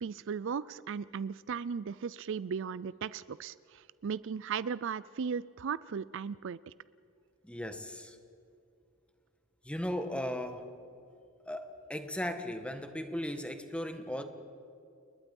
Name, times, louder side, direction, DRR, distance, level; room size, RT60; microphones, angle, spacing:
voice 1, 0.0-6.6, right 6 dB, 60° right, 18 dB, 0.4 m, -36 dB
voice 2, 7.4-8.1 9.6-10.7 11.5-14.2, left 1 dB, 5° left, 7 dB, 1.6 m, -37 dB
29.5 x 20.5 x 5.4 m, 2.5 s
head